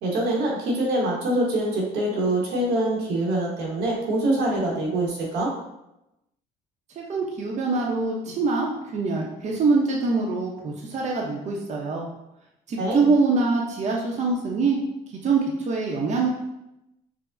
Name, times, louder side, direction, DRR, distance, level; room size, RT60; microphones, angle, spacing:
voice 1, 0.0-5.5 12.8-13.1, right 1 dB, 90° right, -3 dB, 1.1 m, -24 dB
voice 2, 7.0-12.1 12.7-14.8 15.1-16.3, right 4 dB, 45° right, -1 dB, 0.7 m, -24 dB
4.7 x 2.1 x 2.5 m, 0.87 s
cardioid pair, 110°, 17 cm